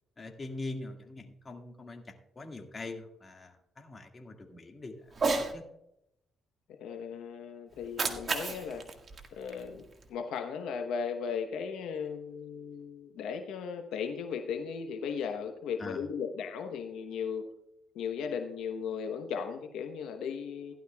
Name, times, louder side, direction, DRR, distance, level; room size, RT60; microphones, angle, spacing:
voice 1, 0.2-5.0 5.4-5.6 15.8-16.0, left 2 dB, 30° left, 3 dB, 1.9 m, -43 dB
Cat, 5.1-5.5 7.7-10.1, right 3 dB, 40° right, 1.7 m, -33 dB
voice 2, 6.7-8.9 9.3-17.5 17.9-20.7, left 6 dB, 85° left, 5 dB, 0.9 m, -36 dB
16.0 x 11.5 x 2.3 m, 0.80 s
cardioid pair, 90°, 0 cm